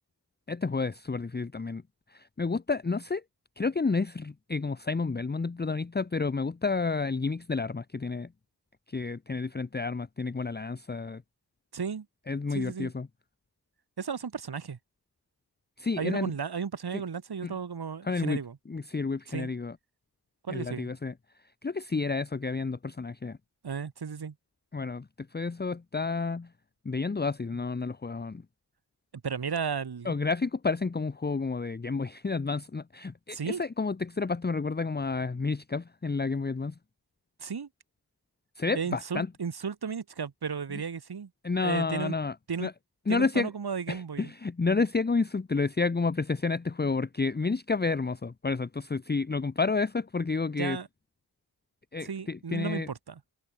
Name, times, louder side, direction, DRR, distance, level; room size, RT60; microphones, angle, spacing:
voice 1, 0.5-1.8 2.1-3.2 3.6-8.3 8.9-11.2 12.3-13.1 15.8-16.3 17.4-17.5 18.0-18.4 18.7-19.7 20.5-21.1 21.6-23.4 24.7-26.5 26.8-28.4 30.0-36.7 38.6-39.3 41.4-42.3 42.6-42.7 43.1-43.5 43.9-50.8 51.9-52.9, left 4 dB, 25° left, 0.8 m, -30 dB
voice 2, 11.7-12.1 12.5-12.9 14.0-14.8 16.0-18.6 19.3-19.5 20.4-20.9 23.6-24.3 29.2-30.2 33.3-33.6 37.4-37.7 38.7-41.3 41.6-42.1 42.5-42.7 43.1-44.3 50.6-50.9 52.0-53.2, right 6 dB, 75° right, 1.7 m, -34 dB
open air
cardioid pair, 45°, 39 cm